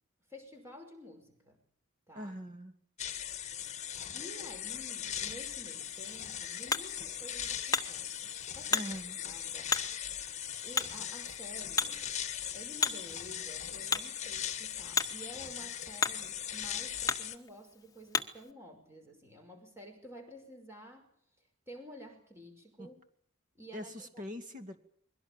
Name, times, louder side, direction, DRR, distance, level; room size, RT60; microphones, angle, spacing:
voice 1, 0.3-1.6 2.1-2.3 3.3-3.6 4.1-8.9 9.2-9.8 10.6-12.1 12.5-21.1 21.7-23.0 23.5-24.2, equal, 15° right, 3 dB, 5.8 m, -51 dB
voice 2, 2.1-2.7 8.7-9.2 22.8-22.9 23.7-24.8, equal, 40° right, 7 dB, 2.4 m, -42 dB
sound 1, 3.0-17.4, left 9 dB, 35° left, 1.6 m, -39 dB
Hammer, 5.8-18.5, left 5 dB, 20° left, 1.4 m, -37 dB
22.5 x 17.5 x 8.9 m, 0.63 s
head